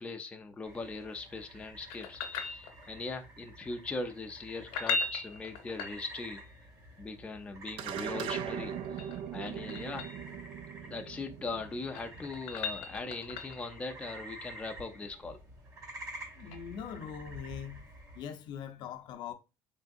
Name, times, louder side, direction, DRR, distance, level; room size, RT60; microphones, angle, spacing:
voice 1, 0.0-6.4 7.0-10.1 10.8-15.4, left 3 dB, 15° left, 0.5 m, -40 dB
sound 1, 0.6-18.3, right 1 dB, 40° right, 1.9 m, -50 dB
sound 2, 1.9-3.1 4.6-6.4 8.6-10.2 11.6-13.7 16.5-16.6, left 4 dB, 85° left, 0.9 m, -38 dB
sound 3, 7.8-12.4, right 9 dB, 65° right, 0.4 m, -40 dB
voice 2, 16.4-17.8 18.1-19.3, left 8 dB, 60° left, 0.6 m, -42 dB
3.8 x 3.5 x 2.6 m
cardioid pair, 145°, 9 cm